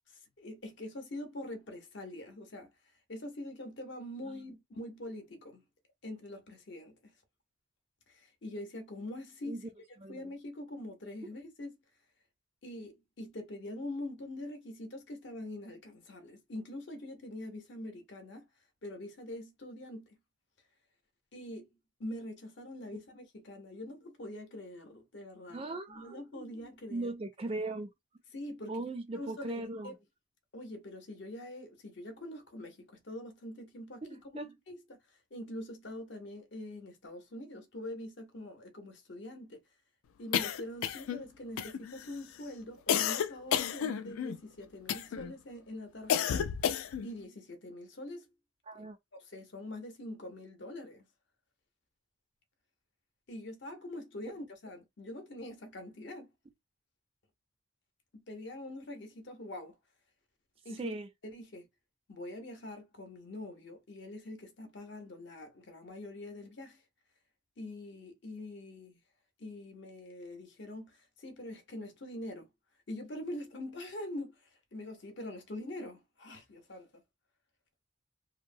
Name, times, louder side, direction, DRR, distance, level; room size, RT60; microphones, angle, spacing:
voice 1, 0.4-2.7 3.1-5.6 6.0-7.1 8.1-9.6 10.1-11.7 12.6-18.5 18.8-20.2 21.3-21.7 22.0-27.1 28.3-28.9 29.1-30.0 30.5-34.2 34.7-35.0 35.3-39.6 40.2-46.3 47.0-48.3 48.7-48.9 49.2-51.1 53.3-56.3 58.1-59.7 60.6-60.9 61.2-61.7 62.1-66.8 67.6-69.0 69.4-72.5 72.9-77.0, left 1 dB, 55° left, 0.8 m, -44 dB
voice 2, 10.0-10.3 25.5-26.5 26.9-27.9 28.7-30.0 34.0-34.6 48.7-49.0 60.8-61.1, right 2 dB, 25° right, 0.3 m, -39 dB
sound 1, 40.3-41.2 41.6-42.1 42.9-44.4 44.9-45.3 46.1-47.1, left 8 dB, 80° left, 0.3 m, -31 dB
2.9 x 2.0 x 2.6 m
head